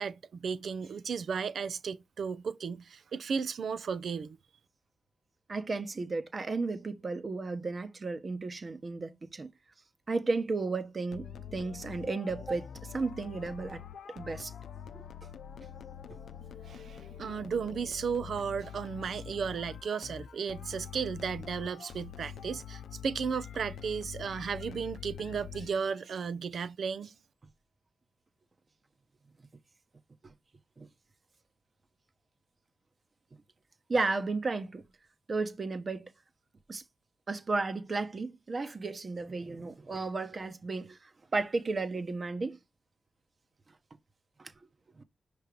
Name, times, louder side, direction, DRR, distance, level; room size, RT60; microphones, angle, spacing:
voice 1, 0.0-4.4 16.7-27.1, right 6 dB, 75° right, 0.5 m, -34 dB
voice 2, 5.5-9.5 10.1-13.8 14.1-14.5 14.9-15.0 30.2-30.3 30.8-30.9 33.9-34.8 35.3-36.1 36.7-36.8 37.3-42.6 44.4-44.5 45.0-45.1, right 3 dB, 50° right, 1.0 m, -34 dB
sound 1, 11.1-26.0, left 8 dB, 85° left, 0.6 m, -45 dB
5.6 x 3.3 x 5.1 m
supercardioid pair, 45°, 0 cm